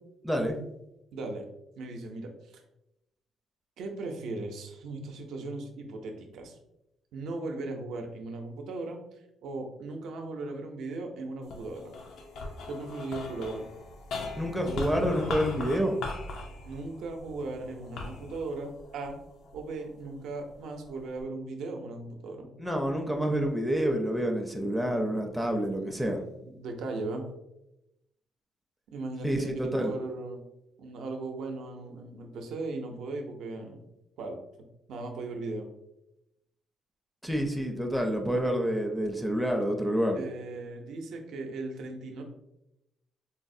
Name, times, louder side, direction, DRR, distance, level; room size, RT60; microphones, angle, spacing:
voice 1, 0.2-0.6 14.4-16.0 22.6-26.2 29.2-29.9 37.2-40.2, equal, ahead, 2 dB, 0.4 m, -28 dB
voice 2, 1.1-1.5 1.8-2.6 3.8-6.6 7.1-9.0 9.4-11.9 12.7-13.7 16.7-19.2 19.5-22.5 26.5-27.2 28.9-30.4 30.8-33.8 34.2-34.4 34.9-35.7 40.1-42.2, right 3 dB, 80° right, 3 dB, 0.5 m, -37 dB
sound 1, 11.4-19.9 20.5-21.2, left 3 dB, 80° left, 0.5 m, -40 dB
3.9 x 2.0 x 2.6 m, 0.88 s
cardioid pair, 90°, 0 cm